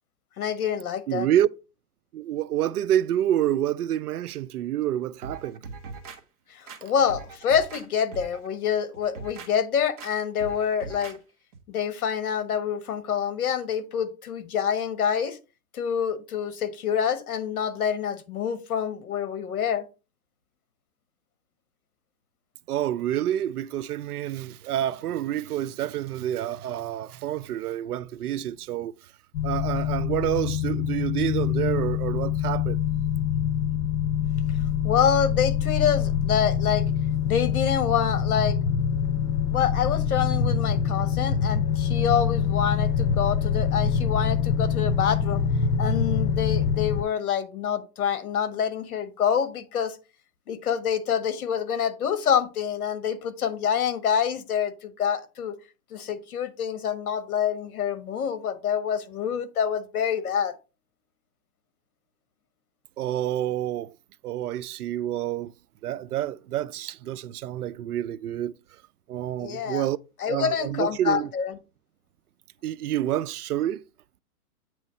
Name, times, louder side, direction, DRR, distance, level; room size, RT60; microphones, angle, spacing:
voice 1, 0.4-1.3 6.5-11.2 11.7-15.4 15.7-19.9 34.8-36.9 37.3-38.6 39.5-45.4 45.8-50.0 50.5-55.6 55.9-60.5 69.4-69.9 70.2-71.6, left 8 dB, 65° left, 1.3 m, -26 dB
voice 2, 1.1-1.5 2.1-5.6 22.7-28.9 29.4-32.8 63.0-64.0 64.2-65.5 65.8-68.5 69.1-70.0 70.3-71.3 72.6-73.8, right 12 dB, 75° right, 0.6 m, -28 dB
sound 1, 5.2-6.2 6.7-7.9 8.1-8.5 8.9-9.5 10.0-10.1 10.4-11.2 11.5-11.6, right 4 dB, 25° right, 0.8 m, -40 dB
sound 2, 29.3-47.0, left 7 dB, 85° left, 0.8 m, -25 dB
8.5 x 3.1 x 5.4 m
hypercardioid pair, 160°, 46 cm